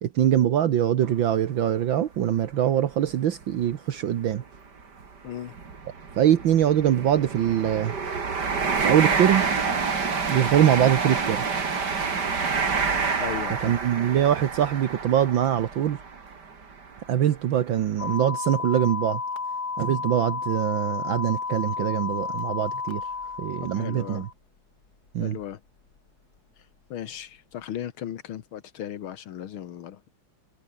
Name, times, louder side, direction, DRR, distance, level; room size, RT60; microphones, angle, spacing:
voice 1, 0.0-4.4 6.2-8.0 8.8-9.5 10.3-11.5 13.6-16.0 17.1-19.2 19.8-23.1 23.4-24.3 25.1-25.4, right 10 dB, 70° right, 1.8 m, -23 dB
sound 1, 1.0-1.2 1.8-1.9 3.0-3.2 3.4-3.6 4.3-17.0 17.6-17.7, right 5 dB, 55° right, 3.2 m, -28 dB
voice 2, 5.2-5.5 13.2-13.8 23.6-24.3 25.2-25.6 26.9-30.1, left 10 dB, 80° left, 2.0 m, -36 dB
sound 2, 18.0-24.3, left 4 dB, 50° left, 3.3 m, -32 dB
omnidirectional pair, 2.3 m